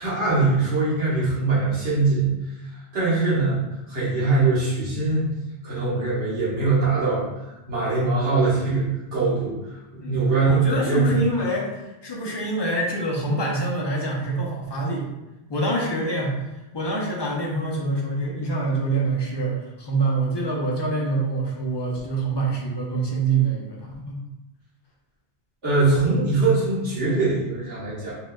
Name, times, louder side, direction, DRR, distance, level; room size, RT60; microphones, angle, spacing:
voice 1, 0.0-2.3 2.9-3.6 3.9-5.3 5.6-7.3 7.7-9.5 10.1-11.2 25.6-28.2, right 3 dB, 80° right, -9 dB, 1.5 m, -22 dB
voice 2, 10.0-15.1 15.5-24.2, right 2 dB, 30° left, -2 dB, 0.5 m, -26 dB
4.8 x 2.3 x 2.2 m, 0.99 s
omnidirectional pair, 1.2 m